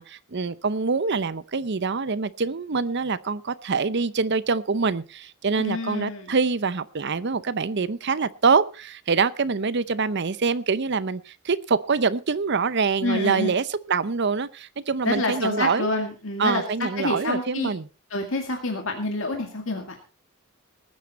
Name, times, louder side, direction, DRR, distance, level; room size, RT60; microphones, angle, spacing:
voice 1, 0.0-15.9 16.4-17.9, right 4 dB, 50° right, 16 dB, 0.7 m, -25 dB
voice 2, 5.6-6.3 13.0-13.5 15.0-17.7 18.1-20.0, left 2 dB, 60° left, 3 dB, 2.1 m, -28 dB
19.5 x 9.5 x 4.2 m, 0.35 s
head